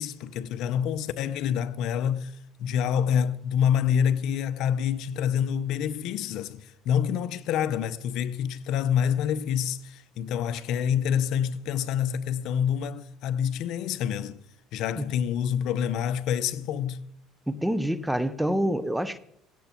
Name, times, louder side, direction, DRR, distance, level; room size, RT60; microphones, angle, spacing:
voice 1, 0.0-2.3 2.6-14.4 14.7-17.0, left 8 dB, 60° left, 0.8 m, -27 dB
voice 2, 17.5-19.2, equal, 5° right, 0.7 m, -27 dB
18.0 x 16.5 x 4.5 m
cardioid pair, 130°, 0 cm